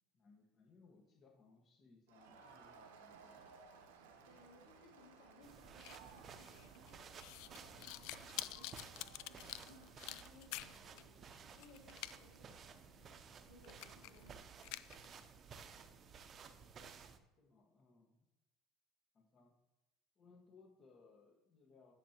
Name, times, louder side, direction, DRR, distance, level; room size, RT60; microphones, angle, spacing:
voice 1, 0.1-4.4 14.0-14.4 17.4-18.3 19.1-19.6 20.1-21.9, left 4 dB, 40° left, 1 dB, 1.6 m, -66 dB
Crowd, 2.1-10.0, right 5 dB, 90° right, 1.0 m, -60 dB
voice 2, 4.2-9.1 9.6-14.5 14.8-15.2, left 3 dB, 90° left, -2 dB, 2.5 m, -65 dB
sound 1, 5.4-17.2, right 6 dB, 40° right, 0.8 m, -56 dB
sound 2, 5.8-11.0 11.3-12.1 12.5-12.6 13.1-13.2 13.6-14.3 14.6-15.1, left 17 dB, 70° left, 0.3 m, -48 dB
9.8 x 5.9 x 3.0 m, 0.99 s
supercardioid pair, 90°, 0 cm